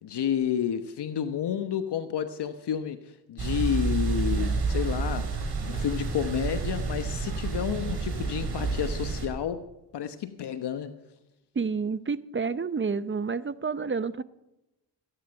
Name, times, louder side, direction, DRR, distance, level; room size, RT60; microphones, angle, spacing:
voice 1, 0.0-5.3 5.7-9.6 9.9-11.0, left 9 dB, 65° left, 1.1 m, -30 dB
sound 1, 3.4-9.3, right 4 dB, 60° right, 4.2 m, -29 dB
voice 2, 11.5-14.2, right 5 dB, 25° right, 0.8 m, -29 dB
15.0 x 10.0 x 5.7 m
supercardioid pair, 55°, 44 cm